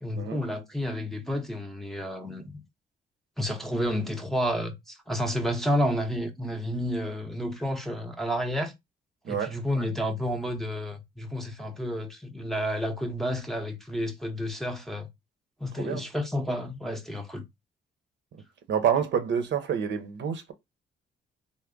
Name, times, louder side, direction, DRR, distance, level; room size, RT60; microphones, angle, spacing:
voice 1, 0.0-2.6 3.4-8.7 9.3-15.1 15.6-17.4, equal, ahead, 0.7 m, -30 dB
voice 2, 18.7-20.5, right 8 dB, 65° right, 0.8 m, -27 dB
3.4 x 2.1 x 3.7 m
cardioid pair, 90°, 20 cm